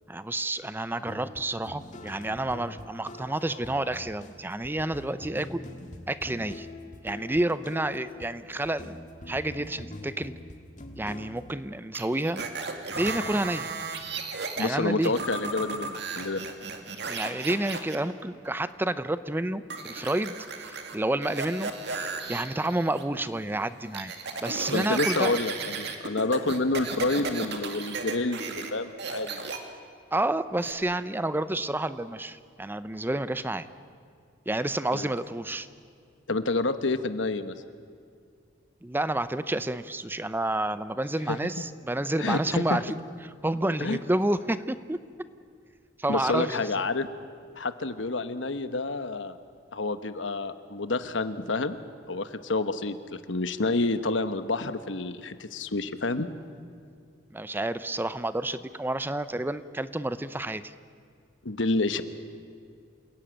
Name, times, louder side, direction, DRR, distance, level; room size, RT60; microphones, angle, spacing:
voice 1, 0.1-5.6 6.1-6.7 7.0-10.3 11.0-12.4 12.9-13.7 14.6-15.1 17.1-24.1 24.4-25.3 30.1-33.7 34.5-35.7 38.8-43.0 43.2-45.0 46.0-46.6 57.3-60.7, right 1 dB, 10° right, 13 dB, 0.6 m, -30 dB
sound 1, 1.0-11.5, left 1 dB, 40° left, 2.0 m, -44 dB
sound 2, 11.9-14.7 15.0-18.0 19.7-21.0 21.2-23.0 23.4-28.7 29.0-29.6 30.6-30.7, right 4 dB, 60° right, 2.2 m, -35 dB
voice 2, 14.6-16.4 24.7-29.5 34.9-35.1 36.3-37.5 41.3-41.4 42.2-42.8 43.8-44.0 46.1-47.1 47.6-49.4 49.7-51.8 52.1-56.3 61.4-62.0, left 3 dB, 80° left, 11 dB, 1.2 m, -29 dB
28.0 x 16.5 x 9.0 m, 2.2 s
head